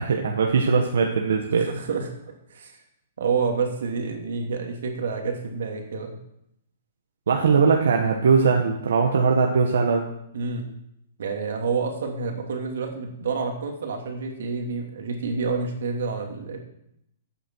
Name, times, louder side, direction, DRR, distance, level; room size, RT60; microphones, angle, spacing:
voice 1, 0.0-1.7 7.3-10.0, right 5 dB, 90° right, 1 dB, 1.6 m, -20 dB
voice 2, 1.5-2.1 2.5-2.8 3.2-6.2 10.3-10.7 11.2-16.6, right 5 dB, 70° right, 2 dB, 2.8 m, -28 dB
14.5 x 9.0 x 4.8 m, 0.76 s
hypercardioid pair, 180°, 0 cm